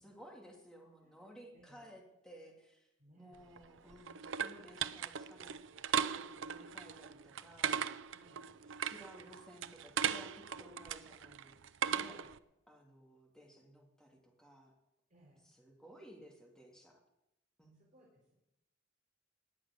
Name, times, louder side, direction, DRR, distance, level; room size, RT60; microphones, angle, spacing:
voice 1, 0.0-2.9 3.2-5.5 5.8-7.9 8.8-11.6 11.9-12.4 12.7-14.7 15.6-17.0 17.6-17.7, equal, 5° left, -1 dB, 2.6 m, -56 dB
voice 2, 1.0-1.9 3.0-3.5 8.1-8.5 15.1-15.5 17.7-18.3, right 1 dB, 40° right, -4 dB, 3.8 m, -65 dB
sound 1, 3.4-12.4, right 8 dB, 75° right, 0.6 m, -38 dB
18.5 x 6.4 x 9.9 m, 0.89 s
head